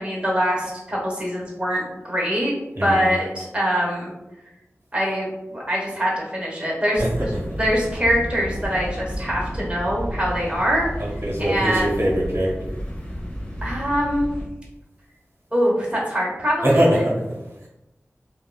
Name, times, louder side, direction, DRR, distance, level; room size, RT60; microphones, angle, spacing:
voice 1, 0.0-2.5 2.8-4.1 4.9-7.3 7.6-10.9 11.4-12.0 13.6-14.3 15.5-17.1, equal, 20° right, -4 dB, 1.1 m, -23 dB
voice 2, 2.8-3.1 7.0-7.3 11.0-12.7 16.6-17.1, right 1 dB, 50° right, -3 dB, 1.2 m, -22 dB
sound 1, 6.9-14.5, equal, 20° left, 0.8 m, -32 dB
3.0 x 2.5 x 2.2 m, 0.98 s
wide cardioid pair, 45°, 5 cm